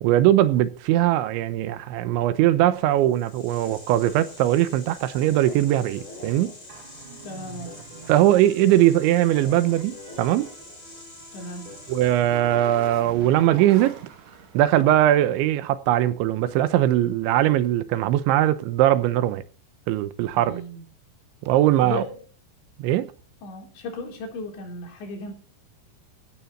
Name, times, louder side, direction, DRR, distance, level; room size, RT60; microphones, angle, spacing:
voice 1, 0.0-6.5 8.1-10.5 11.9-14.0 14.5-19.4 19.9-20.6 21.4-22.0 22.8-23.1, right 13 dB, 85° right, 3.2 m, -20 dB
sound 1, 3.0-12.5, left 2 dB, 20° left, 4.9 m, -44 dB
sound 2, 6.7-15.4, right 7 dB, 55° right, 2.4 m, -44 dB
voice 2, 7.2-7.8 11.3-11.7 20.3-20.8 21.8-22.2 23.4-25.3, left 2 dB, 70° left, 6.1 m, -35 dB
15.5 x 12.5 x 4.2 m
omnidirectional pair, 5.4 m